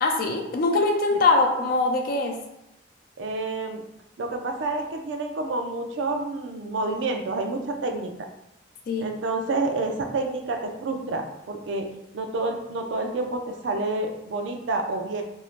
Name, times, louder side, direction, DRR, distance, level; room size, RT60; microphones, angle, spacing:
voice 1, 0.0-2.4 8.9-9.1, left 3 dB, 50° left, 2 dB, 0.4 m, -22 dB
voice 2, 3.2-3.8 4.2-8.1 9.0-11.9 12.1-15.2, right 2 dB, 75° right, 4 dB, 0.4 m, -29 dB
2.6 x 2.0 x 3.0 m, 0.87 s
head